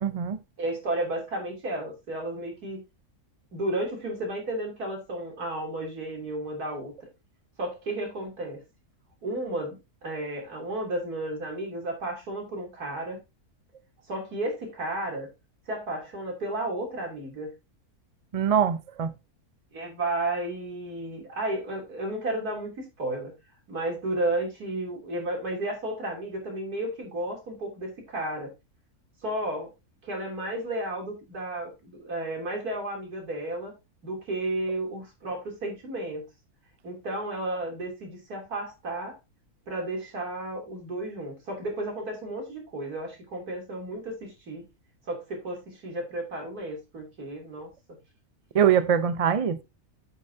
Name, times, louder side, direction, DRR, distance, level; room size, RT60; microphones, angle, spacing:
voice 1, 0.0-0.4 18.3-19.1 48.5-49.6, right 8 dB, 50° right, 0.4 m, -23 dB
voice 2, 0.6-2.8 3.5-6.9 7.6-8.6 9.2-13.2 14.1-15.3 15.7-17.5 19.7-23.3 23.7-28.5 29.2-29.7 30.0-33.7 34.0-36.2 36.8-39.2 39.7-44.7 45.1-47.7, right 1 dB, 80° right, 3.7 m, -33 dB
8.9 x 8.3 x 2.8 m
omnidirectional pair, 1.6 m